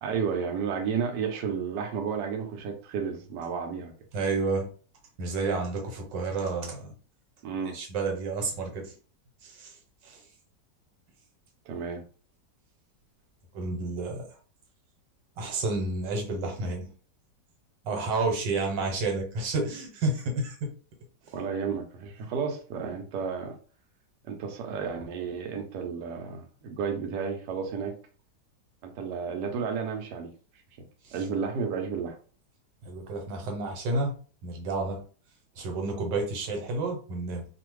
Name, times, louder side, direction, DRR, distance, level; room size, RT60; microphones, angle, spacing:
voice 1, 0.0-3.9 7.4-7.8 11.7-12.0 21.3-23.6 24.2-28.0 28.8-30.3 31.1-32.2, right 6 dB, 75° right, 4 dB, 1.2 m, -32 dB
voice 2, 4.1-4.7 5.2-6.9 7.6-8.9 9.4-9.7 10.0-10.2 13.5-14.3 15.4-16.9 17.8-20.7 31.0-31.1 32.8-34.1 34.4-35.0 35.6-37.5, right 3 dB, 90° right, 2 dB, 1.5 m, -30 dB
2.7 x 2.5 x 3.0 m, 0.38 s
omnidirectional pair, 1.9 m